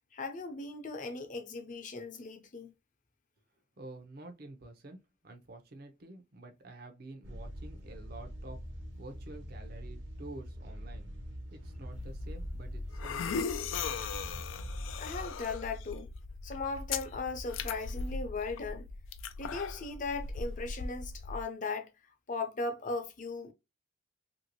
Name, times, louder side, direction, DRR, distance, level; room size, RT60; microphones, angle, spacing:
voice 1, 0.1-2.7 15.0-16.1 16.4-18.9 19.4-21.9 22.3-23.5, left 3 dB, 40° left, 0.6 m, -38 dB
voice 2, 3.8-5.0 5.2-8.6 9.0-11.1 11.5-13.5, right 2 dB, 50° right, 0.6 m, -49 dB
sound 1, 7.2-15.3, equal, 70° right, 0.9 m, -44 dB
sound 2, 11.9-21.4, left 5 dB, 85° left, 0.4 m, -39 dB
2.9 x 2.7 x 2.9 m
head